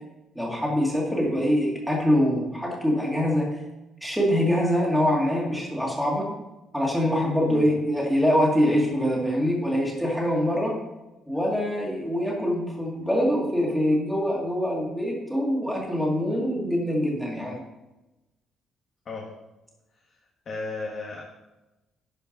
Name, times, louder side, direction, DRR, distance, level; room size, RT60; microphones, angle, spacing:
voice 1, 0.3-3.5 4.0-6.3 6.7-10.7 11.3-17.6, equal, ahead, -3 dB, 2.3 m, -24 dB
voice 2, 20.4-21.2, left 3 dB, 40° left, -2 dB, 1.4 m, -34 dB
11.5 x 5.1 x 5.3 m, 1.0 s
cardioid pair, 150°, 0 cm